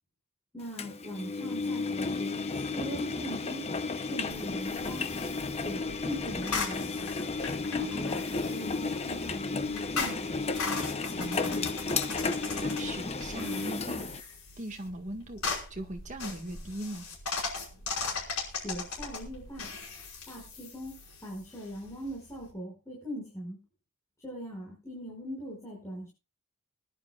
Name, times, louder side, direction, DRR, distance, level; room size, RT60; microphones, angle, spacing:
voice 1, 0.5-3.6 4.1-5.1 5.5-7.1 7.7-10.4 18.5-19.7 20.3-21.0 21.2-23.6 24.2-26.1, equal, 15° left, -4 dB, 5.8 m, -40 dB
Engine, 0.8-14.2, left 3 dB, 30° left, 0.7 m, -33 dB
sound 1, 4.3-22.5, left 4 dB, 80° left, 5.3 m, -39 dB
voice 2, 11.2-11.7 12.6-14.1 14.6-15.4 15.7-17.1, right 1 dB, 35° right, 5 dB, 1.8 m, -39 dB
25.0 x 11.0 x 2.4 m, 0.29 s
head